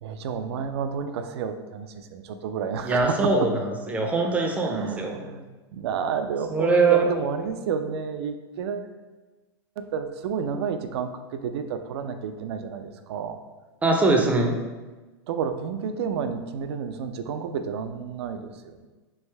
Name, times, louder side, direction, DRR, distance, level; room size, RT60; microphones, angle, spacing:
voice 1, 0.0-3.3 4.6-5.5 5.7-8.9 9.8-13.4 15.3-18.9, right 6 dB, 75° right, 8 dB, 0.4 m, -30 dB
voice 2, 2.8-5.2 6.5-7.1 13.8-14.6, right 3 dB, 10° right, 1 dB, 0.4 m, -22 dB
3.3 x 2.6 x 3.2 m, 1.2 s
hypercardioid pair, 125°, 14 cm